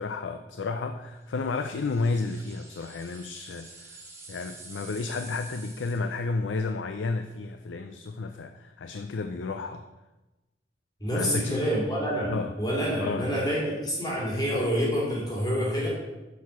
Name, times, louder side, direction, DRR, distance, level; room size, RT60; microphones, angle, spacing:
voice 1, 0.0-4.0 4.3-9.8 11.1-11.8 12.3-12.5 13.0-13.3, left 3 dB, 85° left, 7 dB, 0.5 m, -32 dB
sound 1, 1.4-6.2, right 3 dB, 15° right, 1.3 m, -48 dB
voice 2, 11.0-12.3 12.6-15.9, equal, 20° left, -5 dB, 2.5 m, -27 dB
8.4 x 4.7 x 6.0 m, 1.1 s
head